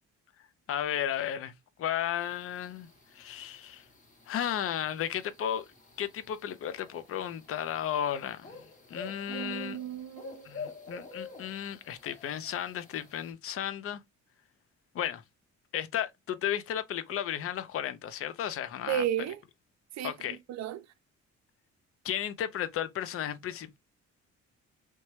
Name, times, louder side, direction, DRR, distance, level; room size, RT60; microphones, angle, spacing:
voice 1, 0.7-1.5 1.8-2.9 3.1-3.8 4.3-5.7 6.0-8.6 8.9-9.8 10.4-14.0 14.9-15.2 15.7-19.0 20.0-20.4 22.0-23.8, left 10 dB, 50° left, 0.5 m, -34 dB
sound 1, 2.2-13.3, left 4 dB, 25° left, 0.9 m, -47 dB
voice 2, 9.3-10.5 18.9-19.4 20.0-20.8, right 11 dB, 60° right, 0.5 m, -34 dB
2.9 x 2.2 x 3.0 m
cardioid pair, 90°, 30 cm